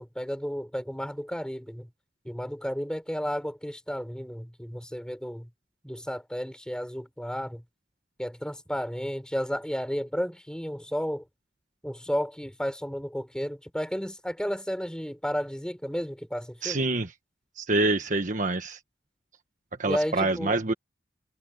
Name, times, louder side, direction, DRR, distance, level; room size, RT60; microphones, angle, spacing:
voice 1, 0.0-1.9 2.2-5.5 5.8-7.6 8.2-11.2 11.8-16.8 19.8-20.5, equal, 5° left, 5.0 m, -32 dB
voice 2, 16.6-17.1 17.6-18.8 19.8-20.7, right 2 dB, 45° right, 1.4 m, -26 dB
head